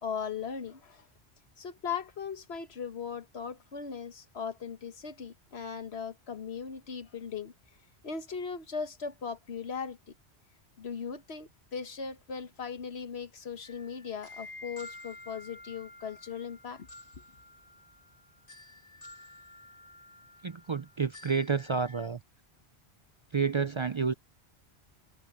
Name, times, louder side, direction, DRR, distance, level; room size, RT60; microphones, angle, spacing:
voice 1, 0.0-1.1 1.6-7.5 8.0-10.1 10.8-16.9, left 6 dB, 75° left, 1.6 m, -38 dB
sound 1, 13.6-22.1, left 2 dB, 55° left, 3.0 m, -51 dB
voice 2, 20.4-22.2 23.3-24.1, right 5 dB, 45° right, 0.4 m, -29 dB
omnidirectional pair, 1.1 m